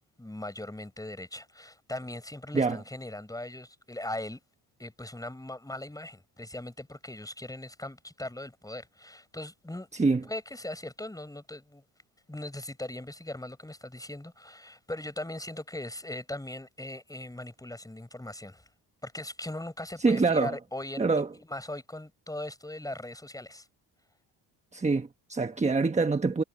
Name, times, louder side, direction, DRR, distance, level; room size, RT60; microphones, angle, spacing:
voice 1, 0.2-4.4 4.8-9.9 10.2-11.8 12.3-18.6 19.0-23.7, left 1 dB, 10° left, 5.3 m, -39 dB
voice 2, 9.9-10.2 20.0-20.6 21.0-21.3 24.7-26.4, right 4 dB, 15° right, 1.2 m, -25 dB
supercardioid pair, 85°, 43 cm